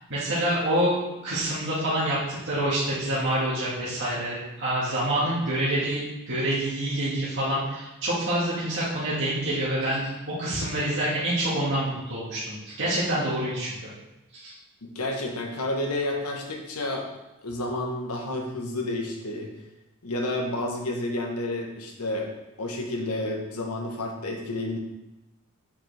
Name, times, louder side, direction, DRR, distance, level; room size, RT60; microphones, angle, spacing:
voice 1, 0.1-10.1 10.4-13.9 14.3-14.5, right 1 dB, 55° right, -9 dB, 1.8 m, -27 dB
voice 2, 14.8-17.1 17.4-19.5 20.0-22.3 22.6-24.8, left 1 dB, 85° left, 1 dB, 1.2 m, -30 dB
7.2 x 5.1 x 3.4 m, 1.0 s
head